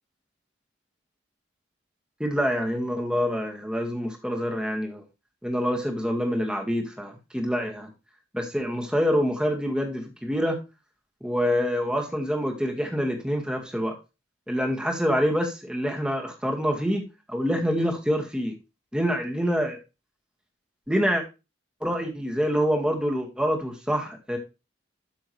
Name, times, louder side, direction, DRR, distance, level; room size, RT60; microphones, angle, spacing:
voice 1, 2.2-5.0 5.4-7.9 8.3-10.6 11.2-13.9 14.5-18.5 18.9-19.8 20.9-21.2 21.8-24.4, equal, 5° right, 2 dB, 1.8 m, -26 dB
13.0 x 6.2 x 3.2 m, 0.28 s
head